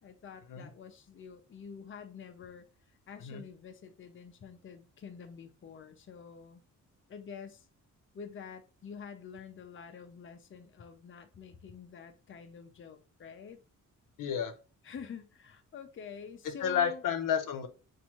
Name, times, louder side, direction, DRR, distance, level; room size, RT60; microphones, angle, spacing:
voice 1, 0.0-2.7 3.1-6.6 7.1-7.6 8.1-13.6 14.8-17.0, left 6 dB, 40° left, 0.7 m, -47 dB
voice 2, 14.2-14.5 16.6-17.7, left 8 dB, 80° left, 0.8 m, -31 dB
5.8 x 2.7 x 2.9 m
cardioid pair, 120°, 32 cm